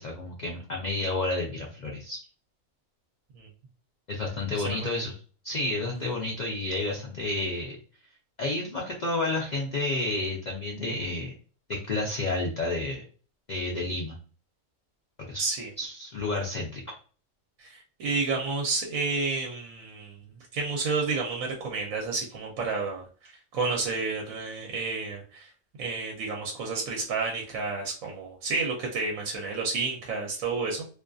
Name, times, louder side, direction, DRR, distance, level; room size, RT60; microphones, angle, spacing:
voice 1, 0.0-2.2 4.1-5.1 5.4-7.8 8.4-11.3 11.7-13.0 13.5-14.2 15.2-15.5 15.8-16.8, left 2 dB, 75° left, -2 dB, 0.4 m, -30 dB
voice 2, 4.5-4.9 15.4-15.7 17.6-20.1 20.5-25.5 25.8-30.9, right 4 dB, 75° right, 0 dB, 1.0 m, -30 dB
2.5 x 2.5 x 2.3 m, 0.39 s
omnidirectional pair, 1.4 m